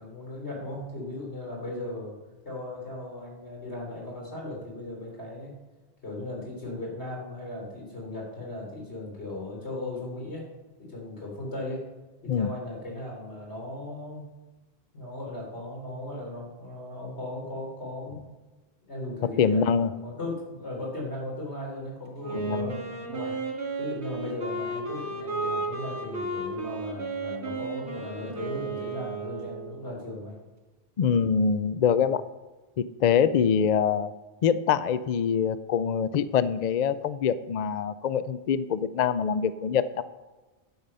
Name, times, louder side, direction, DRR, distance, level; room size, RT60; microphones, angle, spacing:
voice 1, 0.0-2.2 2.4-5.6 6.0-10.5 10.8-11.8 12.2-14.2 14.9-18.2 18.9-23.4 23.8-30.4, left 2 dB, 90° left, -2 dB, 4.0 m, -37 dB
voice 2, 19.4-19.9 22.3-22.7 31.0-32.2 33.0-34.1 34.4-40.0, left 7 dB, 55° left, 14 dB, 0.5 m, -24 dB
Wind instrument woodwind instrument, 22.2-30.0, right 3 dB, 80° right, 2.4 m, -34 dB
11.0 x 7.9 x 5.5 m, 1.2 s
omnidirectional pair, 1.1 m